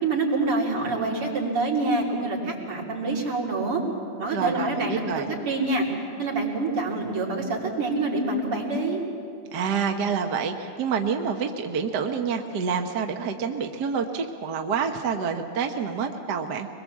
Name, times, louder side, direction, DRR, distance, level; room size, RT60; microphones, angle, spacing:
voice 1, 0.0-3.8 4.2-5.9 6.2-9.0, right 3 dB, 80° right, -3 dB, 4.3 m, -26 dB
voice 2, 4.3-5.3 9.5-16.7, right 6 dB, 55° right, 4 dB, 1.5 m, -27 dB
23.5 x 21.5 x 7.3 m, 2.4 s
omnidirectional pair, 2.4 m